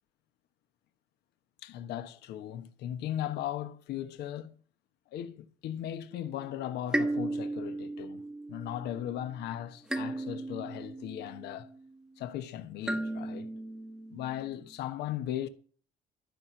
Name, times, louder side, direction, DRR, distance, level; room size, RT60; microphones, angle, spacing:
voice 1, 1.6-4.6 5.1-8.2 8.5-11.7 12.2-13.5 14.1-15.5, left 11 dB, 80° left, 1.2 m, -37 dB
sound 1, 6.1-6.6 6.9-9.3 9.9-12.0 12.8-14.5, right 1 dB, 5° right, 0.9 m, -36 dB
13.0 x 6.1 x 8.3 m
cardioid pair, 110°, 17 cm